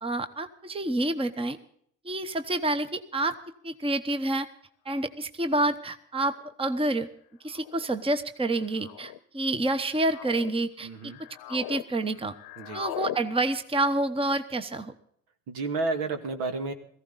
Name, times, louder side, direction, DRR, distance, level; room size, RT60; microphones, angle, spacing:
voice 1, 0.0-1.6 2.0-3.3 3.6-4.5 4.8-7.1 7.4-11.1 11.5-12.3 12.7-14.9, right 2 dB, 15° right, 10 dB, 1.1 m, -28 dB
sound 1, 5.1-5.2 6.2-6.5 7.5-7.9 8.7-9.2 9.8-10.5 11.0-11.9 12.1-13.2, left 14 dB, 60° left, 0.9 m, -39 dB
voice 2, 10.8-11.2 12.6-12.8 15.5-16.7, right 3 dB, 70° right, 6 dB, 2.2 m, -31 dB
17.5 x 15.0 x 4.1 m, 0.64 s
hypercardioid pair, 70°, 40 cm